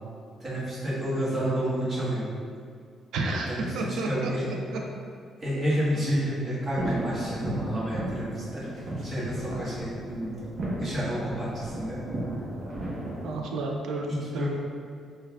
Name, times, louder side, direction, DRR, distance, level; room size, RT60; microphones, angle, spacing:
voice 1, 0.4-2.3 3.2-3.7 4.1-4.5 5.4-8.8 9.0-10.4 10.8-12.0 14.1-14.5, equal, 35° right, -8 dB, 1.3 m, -30 dB
voice 2, 3.1-4.6 13.2-14.5, right 3 dB, 75° right, 1 dB, 0.4 m, -31 dB
sound 1, 6.8-13.4, right 1 dB, 55° right, 1.0 m, -34 dB
5.1 x 2.3 x 2.4 m, 2.2 s
cardioid pair, 90°, 0 cm